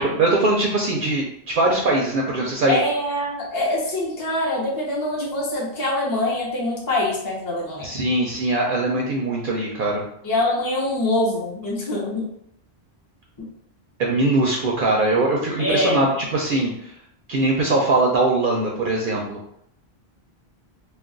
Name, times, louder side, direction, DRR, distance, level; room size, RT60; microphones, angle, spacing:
voice 1, 0.0-2.8 7.8-10.0 14.0-16.9 17.3-19.4, right 2 dB, 60° right, -2 dB, 0.6 m, -21 dB
voice 2, 2.7-7.9 10.2-12.3 13.4-13.5 15.6-16.1, left 1 dB, 25° left, -4 dB, 0.6 m, -24 dB
2.3 x 2.3 x 3.7 m, 0.72 s
omnidirectional pair, 1.1 m